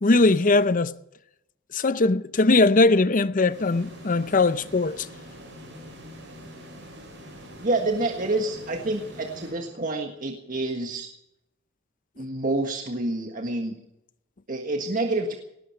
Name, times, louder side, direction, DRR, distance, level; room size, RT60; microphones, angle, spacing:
voice 1, 0.0-0.9 1.7-5.1, left 3 dB, 40° left, 0.6 m, -20 dB
sound 1, 3.5-10.2, equal, 65° right, 7.9 m, -44 dB
voice 2, 7.6-11.1 12.2-13.7 14.5-15.3, right 2 dB, 45° right, 1.6 m, -28 dB
19.0 x 16.5 x 4.5 m
head